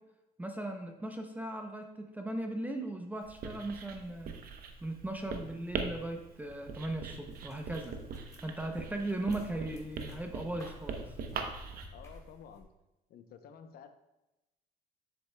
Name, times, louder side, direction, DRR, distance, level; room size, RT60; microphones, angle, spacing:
voice 1, 0.4-4.4 4.8-8.0 8.4-11.2, right 1 dB, 10° right, 4 dB, 0.6 m, -38 dB
Writing, 3.2-11.9, right 5 dB, 60° right, 0.8 m, -42 dB
sound 1, 7.3-12.6, left 1 dB, 20° left, 1.6 m, -55 dB
voice 2, 11.9-12.7 13.1-14.0, left 7 dB, 65° left, 8 dB, 0.7 m, -52 dB
7.7 x 6.9 x 2.2 m, 0.98 s
cardioid pair, 110°, 17 cm